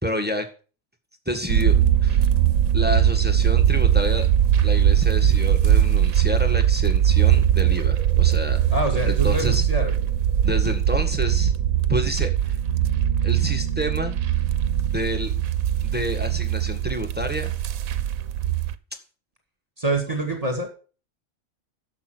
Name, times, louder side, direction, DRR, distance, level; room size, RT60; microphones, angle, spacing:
voice 1, 0.0-0.5 1.2-2.3 2.7-4.3 4.6-8.6 9.0-9.6 10.4-11.5 11.9-12.6 13.2-14.2 14.8-15.3 15.8-17.5, equal, 5° right, 6 dB, 1.5 m, -29 dB
sound 1, 1.5-18.7, right 10 dB, 85° right, 1.2 m, -20 dB
voice 2, 8.7-9.9 19.8-20.7, right 1 dB, 25° right, 3 dB, 2.1 m, -26 dB
11.5 x 7.3 x 6.2 m, 0.37 s
omnidirectional pair, 1.4 m